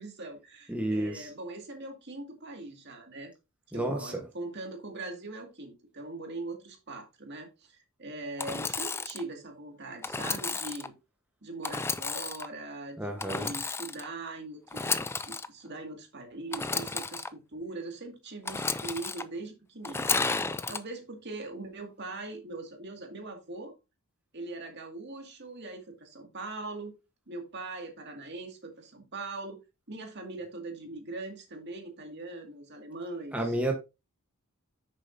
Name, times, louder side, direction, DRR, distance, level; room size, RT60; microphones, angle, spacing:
voice 1, 0.0-3.3 3.7-10.9 11.4-14.9 15.3-20.1 20.7-23.7 24.3-26.9 27.3-29.6 29.9-33.6, right 2 dB, 50° right, 2.1 m, -41 dB
voice 2, 0.7-1.3 3.7-4.2 13.0-13.6 33.3-33.7, right 1 dB, 5° right, 1.1 m, -31 dB
Engine / Sawing, 8.4-9.2 10.0-10.9 11.6-12.5 13.2-14.1 14.7-15.5 16.5-17.3 18.5-19.2 19.8-20.8, left 4 dB, 10° left, 0.3 m, -32 dB
9.1 x 6.9 x 2.6 m
head